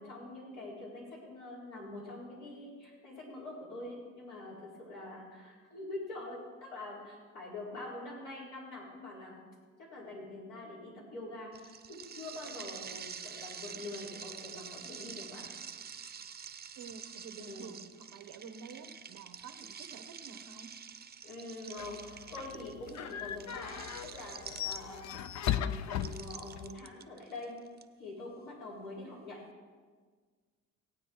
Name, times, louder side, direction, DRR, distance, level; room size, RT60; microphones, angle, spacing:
voice 1, 0.0-9.4 9.9-15.5 17.4-17.7 21.2-27.6 28.0-29.4, left 2 dB, 90° left, -5 dB, 4.4 m, -45 dB
sound 1, 11.5-25.2 25.9-27.8, right 7 dB, 30° right, 0.6 m, -47 dB
voice 2, 16.8-20.7, right 6 dB, 90° right, 7 dB, 1.0 m, -49 dB
sound 2, 21.8-26.7, left 10 dB, 65° left, 0.6 m, -37 dB
17.0 x 8.9 x 4.6 m, 1.5 s
cardioid pair, 90°, 30 cm